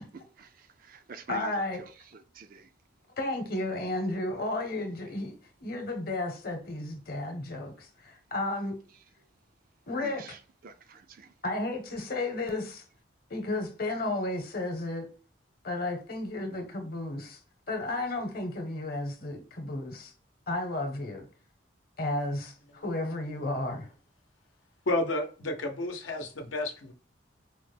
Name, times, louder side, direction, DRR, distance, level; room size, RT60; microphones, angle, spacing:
voice 1, 0.1-2.7 4.7-5.2 8.9-9.3 10.0-11.4, right 4 dB, 45° right, 0.4 m, -48 dB
voice 2, 1.3-1.8 3.2-8.7 9.9-10.2 11.4-12.8 13.3-15.1 15.6-17.4 17.7-20.1 20.5-21.3 22.0-23.9, left 2 dB, 50° left, 0.9 m, -33 dB
voice 3, 24.9-26.9, left 2 dB, 85° left, 0.7 m, -31 dB
4.6 x 2.1 x 3.2 m
head